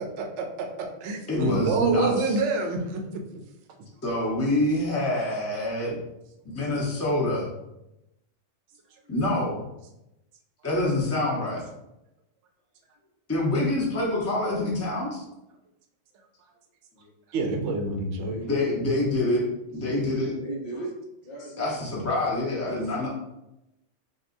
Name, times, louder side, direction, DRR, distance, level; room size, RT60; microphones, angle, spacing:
voice 1, 0.0-3.2 17.3-18.3, right 3 dB, 70° right, 3 dB, 0.9 m, -28 dB
voice 2, 1.3-2.4 4.0-6.0 6.4-7.5 9.1-9.6 10.6-11.6 13.3-15.2 18.4-19.5 19.7-20.3 21.6-23.1, left 1 dB, 15° left, -4 dB, 0.8 m, -26 dB
voice 3, 18.2-18.6 20.1-20.9 21.2-21.8, right 2 dB, 55° left, -3 dB, 1.4 m, -36 dB
6.3 x 2.3 x 2.6 m, 0.91 s
omnidirectional pair, 1.3 m